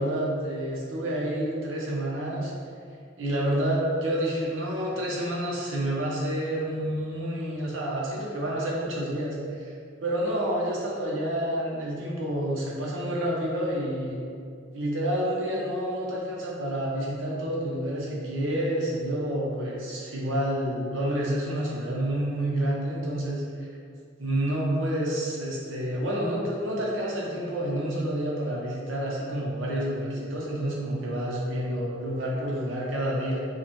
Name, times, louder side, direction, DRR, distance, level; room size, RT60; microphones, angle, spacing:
voice 1, 0.0-2.5 3.2-14.2 14.7-23.7 24.2-33.4, right 1 dB, 75° right, -4 dB, 0.8 m, -29 dB
4.7 x 2.2 x 3.0 m, 2.3 s
head